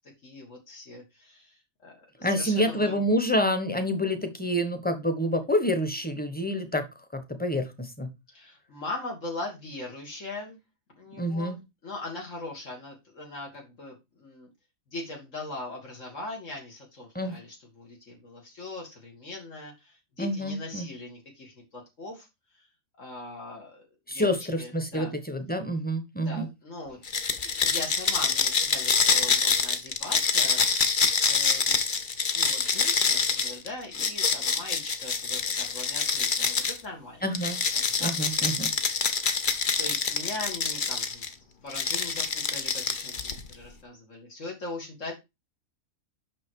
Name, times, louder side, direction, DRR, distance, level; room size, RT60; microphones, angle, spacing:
voice 1, 0.2-3.0 8.3-10.6 11.0-14.5 14.9-22.3 22.5-22.6 23.0-23.8 24.1-25.1 26.2-27.0 27.4-30.6 31.2-31.8 32.3-37.2 37.7-38.6 39.8-41.3 41.6-45.1, left 2 dB, 70° left, -1 dB, 2.5 m, -40 dB
voice 2, 2.2-6.8 7.1-8.1 11.2-11.6 17.1-17.4 20.2-20.9 24.1-26.5 37.2-37.6 38.0-38.7, equal, 10° left, 8 dB, 1.1 m, -27 dB
sound 1, 27.1-36.8 37.4-41.3 41.7-43.5, left 5 dB, 45° left, 1.0 m, -26 dB
6.0 x 6.0 x 4.6 m, 0.23 s
omnidirectional pair, 1.4 m